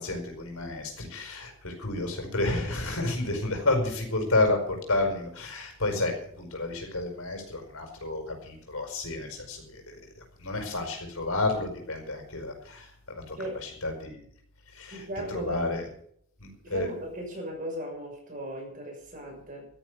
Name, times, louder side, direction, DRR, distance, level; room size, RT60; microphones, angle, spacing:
voice 1, 0.0-4.6 4.9-9.8 10.4-12.8 13.3-13.4 13.8-14.2 14.8-15.0 15.3-15.8 16.4-16.9, left 2 dB, 85° left, 3 dB, 5.2 m, -30 dB
voice 2, 14.9-15.7 16.6-19.7, right 1 dB, 40° right, 0 dB, 6.3 m, -37 dB
13.5 x 10.5 x 8.2 m, 0.65 s
head